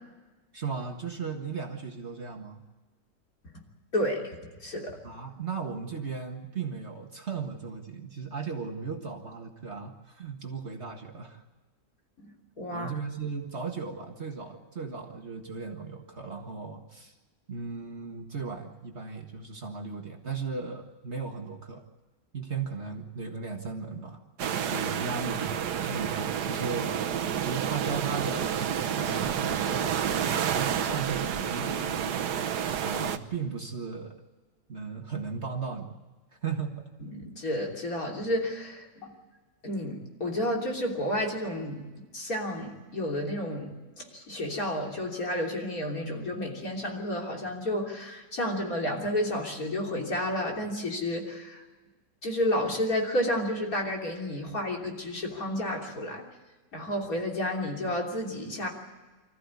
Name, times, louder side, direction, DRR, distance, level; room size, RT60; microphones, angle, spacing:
voice 1, 0.5-2.6 5.0-11.4 12.7-17.1 17.5-21.8 22.3-24.2 24.7-26.9 27.4-32.3 32.8-34.2 34.7-36.0 36.4-36.9, right 5 dB, 40° right, 3 dB, 1.9 m, -36 dB
voice 2, 3.9-4.4 4.6-5.0 12.2-12.9 37.0-39.1 39.6-41.8 42.1-51.6 52.2-56.2 56.7-58.7, left 1 dB, 55° left, 0 dB, 3.7 m, -31 dB
sound 1, 24.4-33.2, right 8 dB, 70° right, 1.5 m, -29 dB
25.5 x 14.5 x 9.7 m, 1.2 s
omnidirectional pair, 1.9 m